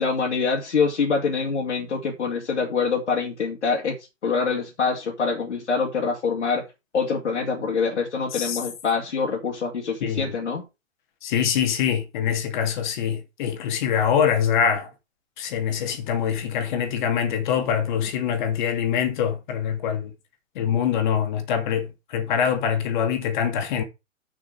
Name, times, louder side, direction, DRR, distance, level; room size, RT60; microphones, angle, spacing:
voice 1, 0.0-4.0 4.2-6.6 6.9-10.6, left 5 dB, 60° left, 2.6 m, -25 dB
voice 2, 10.0-10.3 11.2-14.9 15.4-20.1 20.6-23.8, left 8 dB, 35° left, 2.3 m, -24 dB
6.9 x 6.0 x 6.1 m
figure-of-eight pair, 120°, 39 cm